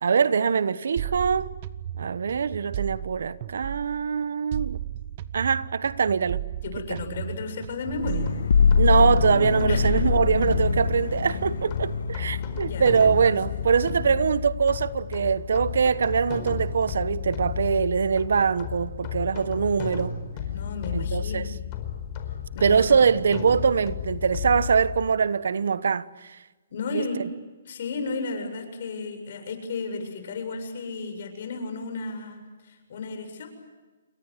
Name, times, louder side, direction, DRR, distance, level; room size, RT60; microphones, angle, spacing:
voice 1, 0.0-1.5 2.0-4.8 5.3-6.4 8.8-20.1 20.9-21.5 22.6-26.4 26.9-27.0, right 6 dB, 75° right, 1.1 m, -23 dB
sound 1, 1.0-4.1 4.5-8.9 9.2-11.6, right 11 dB, 40° right, 1.0 m, -35 dB
voice 2, 6.6-8.2 9.6-9.8 12.3-13.6 20.5-21.6 22.5-22.8 26.7-27.3 27.7-33.5, left 4 dB, 55° left, 7.6 m, -34 dB
sound 2, 7.9-25.1, left 8 dB, 30° left, 4.6 m, -33 dB
sound 3, 8.0-14.3, left 6 dB, 75° left, 1.6 m, -25 dB
29.0 x 23.0 x 8.2 m
hypercardioid pair, 155°, 0 cm